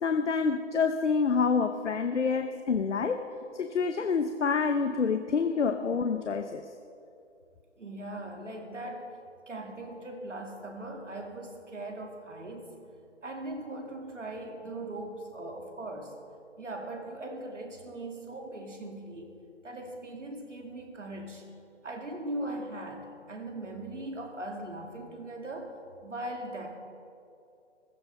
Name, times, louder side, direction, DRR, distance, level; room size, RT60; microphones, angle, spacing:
voice 1, 0.0-6.7, left 5 dB, 75° left, 8 dB, 0.8 m, -27 dB
voice 2, 7.8-9.0 9.5-12.7 13.2-16.1 16.6-19.4 19.6-21.5 21.8-25.7 26.0-26.7, right 1 dB, 85° right, 1 dB, 2.5 m, -39 dB
15.0 x 13.5 x 4.1 m, 2.6 s
figure-of-eight pair, 150°, 36 cm